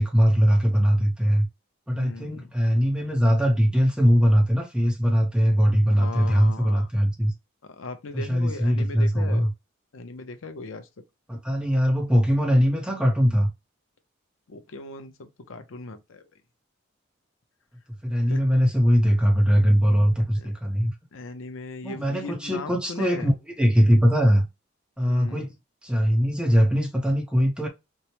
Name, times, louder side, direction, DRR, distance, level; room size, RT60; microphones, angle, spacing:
voice 1, 0.0-1.5 1.9-7.3 8.1-9.5 11.3-13.5 18.0-20.9 21.8-24.4 25.0-25.5 25.8-27.7, equal, 5° right, 0.7 m, -21 dB
voice 2, 1.9-2.5 5.8-6.9 7.6-9.5 9.9-10.9 14.5-16.3 18.3-18.4 20.3-20.5 21.1-23.3 25.0-25.5, left 3 dB, 75° left, 0.6 m, -38 dB
4.4 x 2.0 x 2.8 m
head